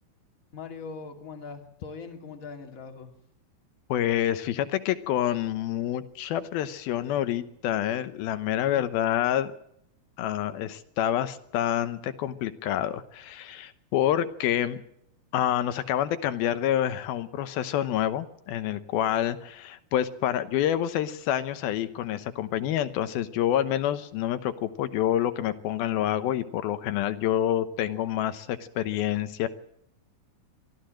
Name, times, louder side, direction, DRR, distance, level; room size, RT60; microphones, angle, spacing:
voice 1, 0.5-3.1 8.6-8.8, left 5 dB, 25° left, 4 dB, 2.3 m, -41 dB
voice 2, 3.9-9.6 10.2-14.8 15.3-29.5, left 11 dB, 80° left, 11 dB, 2.8 m, -27 dB
23.5 x 15.0 x 7.6 m, 0.74 s
omnidirectional pair, 4.3 m